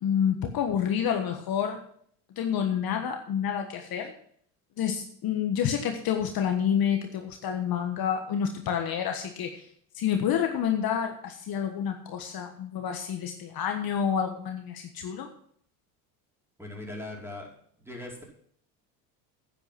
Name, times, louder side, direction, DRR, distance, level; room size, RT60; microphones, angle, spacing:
voice 1, 0.0-1.8 2.4-4.1 4.8-9.7 9.9-15.3, left 8 dB, 45° left, 5 dB, 1.4 m, -28 dB
voice 2, 16.6-17.5 17.8-18.2, left 2 dB, 5° right, -2 dB, 4.9 m, -39 dB
9.9 x 9.4 x 6.0 m, 0.63 s
hypercardioid pair, 75°, 48 cm